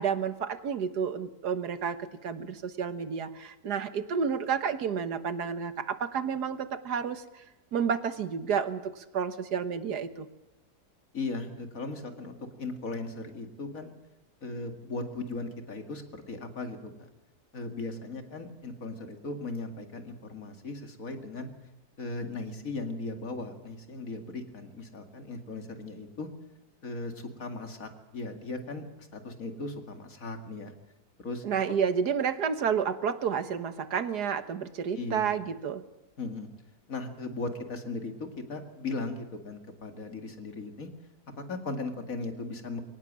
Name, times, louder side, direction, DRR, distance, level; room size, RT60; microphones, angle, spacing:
voice 1, 0.0-7.2 7.7-10.3 31.4-35.8, right 7 dB, 85° right, 11 dB, 1.8 m, -30 dB
voice 2, 11.1-13.9 14.4-17.1 17.5-21.5 22.0-26.3 26.8-30.7 31.2-31.4 35.0-35.3 36.2-36.5 36.9-40.9 41.4-42.8, left 3 dB, 60° left, 6 dB, 2.6 m, -37 dB
23.0 x 18.5 x 7.5 m, 0.98 s
omnidirectional pair, 1.7 m